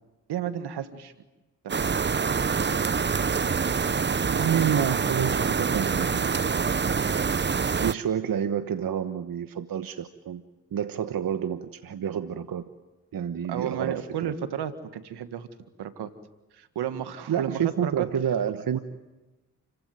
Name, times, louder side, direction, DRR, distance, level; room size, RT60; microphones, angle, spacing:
voice 1, 0.3-1.1 1.6-1.8 13.5-15.5 15.8-16.1 16.5-18.1 18.7-18.8, right 9 dB, 75° right, 10 dB, 1.8 m, -32 dB
sound 1, 1.7-7.9, right 5 dB, 25° right, 0.8 m, -25 dB
voice 2, 4.3-6.5 7.7-10.4 10.7-12.6 13.1-14.3 17.3-18.8, right 8 dB, 60° right, 10 dB, 1.2 m, -29 dB
29.5 x 16.0 x 9.4 m, 1.1 s
supercardioid pair, 45°, 40 cm